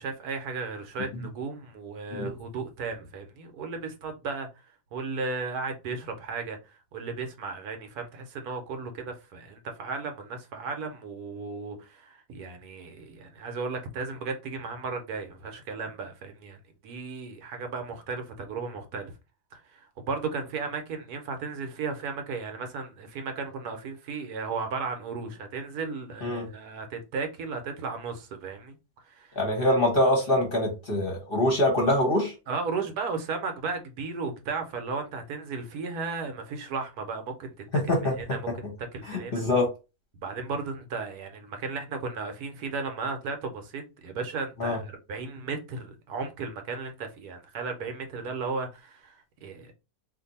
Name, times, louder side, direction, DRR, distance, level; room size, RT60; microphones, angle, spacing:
voice 1, 0.0-4.5 4.9-6.6 6.9-16.6 16.8-19.1 19.5-28.8 29.1-29.7 32.5-37.5 38.2-38.4 38.9-39.4 40.2-44.8 45.1-49.7, right 4 dB, 75° right, 1.1 m, -35 dB
voice 2, 29.3-32.3 37.7-38.4 39.0-39.7 44.6-44.8, left 1 dB, 40° left, 0.9 m, -24 dB
2.6 x 2.5 x 4.0 m
omnidirectional pair, 1.7 m